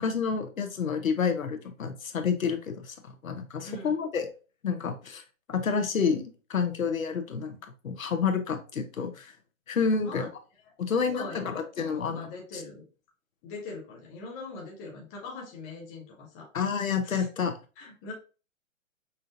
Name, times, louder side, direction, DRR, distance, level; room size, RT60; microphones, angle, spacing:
voice 1, 0.0-4.3 4.6-5.2 5.5-7.6 7.8-9.3 9.7-10.3 10.8-12.2 12.5-12.6 16.5-17.5, left 6 dB, 80° left, 6 dB, 0.9 m, -29 dB
voice 2, 10.0-10.3 10.6-12.9 13.4-16.5 17.0-17.3 17.8-18.1, left 3 dB, 15° left, -1 dB, 0.5 m, -42 dB
5.5 x 2.5 x 2.6 m, 0.34 s
hypercardioid pair, 135°, 40 cm